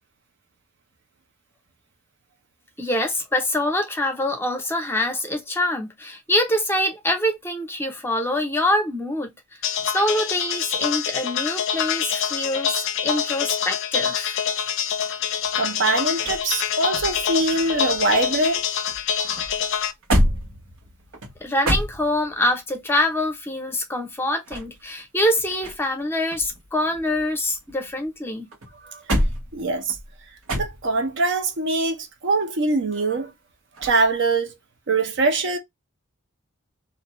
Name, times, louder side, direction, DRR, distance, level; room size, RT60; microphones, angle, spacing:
voice 1, 2.8-9.3 9.9-14.4 21.4-28.5, left 1 dB, 10° left, 0.6 m, -25 dB
sound 1, 9.6-19.9, left 8 dB, 65° left, 0.4 m, -26 dB
sound 2, 15.4-18.6 18.9-22.5 24.2-26.0 26.3-28.1 28.5-31.1 33.8-34.1, equal, 90° right, 1.1 m, -28 dB
voice 2, 15.6-18.6 19.2-19.4 28.8-29.0 29.5-30.0 30.6-33.3 33.8-34.5 34.9-35.6, right 3 dB, 60° right, 0.6 m, -23 dB
2.5 x 2.2 x 2.9 m
head